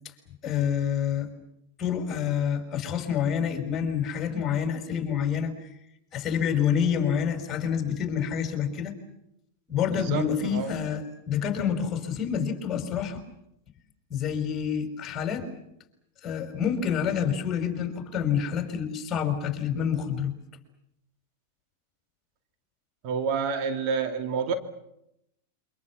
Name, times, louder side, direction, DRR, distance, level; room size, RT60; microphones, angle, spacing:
voice 1, 0.4-1.3 1.8-5.7 6.1-9.0 9.7-13.2 14.1-15.5 16.2-20.3, left 8 dB, 30° left, 6 dB, 5.3 m, -28 dB
voice 2, 9.9-10.7 23.0-24.5, right 5 dB, 50° right, 6 dB, 2.6 m, -29 dB
27.5 x 25.0 x 7.4 m, 0.82 s
hypercardioid pair, 115°, 0 cm